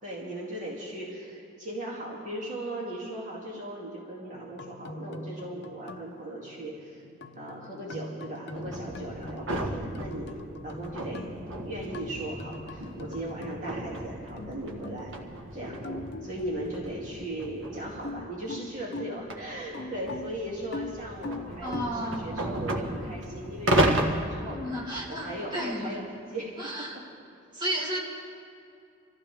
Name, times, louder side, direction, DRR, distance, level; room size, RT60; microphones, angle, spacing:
voice 1, 0.0-7.0 7.3-11.3 11.6-15.1 15.5-15.8 16.2-27.0, right 1 dB, 40° right, -5 dB, 2.6 m, -38 dB
sound 1, 4.3-14.0 14.4-15.5 15.8-17.1 17.9-21.8, left 2 dB, 55° left, 0.7 m, -42 dB
sound 2, 8.5-18.2 18.9-24.2, right 1 dB, 75° right, 1.6 m, -33 dB
voice 2, 21.6-22.5 24.5-26.0 26.6-27.0 27.5-28.0, equal, 25° right, -5 dB, 2.9 m, -33 dB
26.5 x 15.0 x 3.5 m, 2.5 s
head